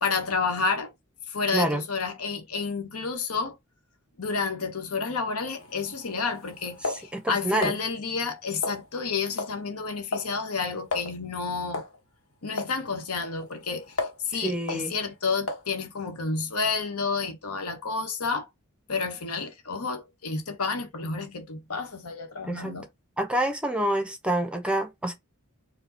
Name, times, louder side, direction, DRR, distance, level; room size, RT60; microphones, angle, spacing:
voice 1, 0.0-0.9 1.3-3.6 4.2-11.8 12.4-13.9 14.2-18.5 18.9-22.9, left 4 dB, 90° left, 1.1 m, -30 dB
sound 1, 5.5-7.8 8.6-9.1 9.4-9.6 9.9-10.3 10.6-10.7 10.9-11.1 11.7-12.0 12.6-12.7 13.2-14.3 14.7-14.9 15.5-15.7, left 3 dB, 70° left, 1.2 m, -33 dB
voice 2, 7.1-7.7 14.4-14.9 22.4-22.8 23.2-25.1, right 1 dB, 5° right, 0.8 m, -27 dB
4.7 x 2.3 x 3.9 m
head